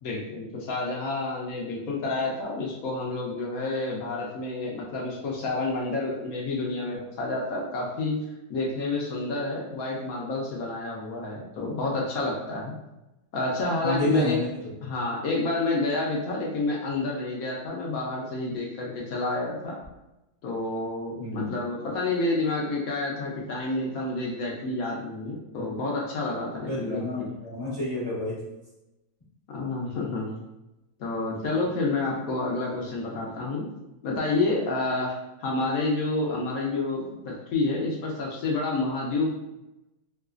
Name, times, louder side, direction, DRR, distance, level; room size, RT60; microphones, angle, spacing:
voice 1, 0.0-8.2 8.5-12.7 13.3-14.4 14.8-19.8 20.4-27.0 29.5-30.3 31.0-33.7 34.0-39.3, left 2 dB, 65° left, -2 dB, 0.9 m, -29 dB
voice 2, 13.8-14.7 21.2-21.6 25.6-25.7 26.6-28.4, left 1 dB, 30° left, -8 dB, 0.5 m, -29 dB
3.2 x 2.8 x 2.4 m, 0.97 s
omnidirectional pair, 2.0 m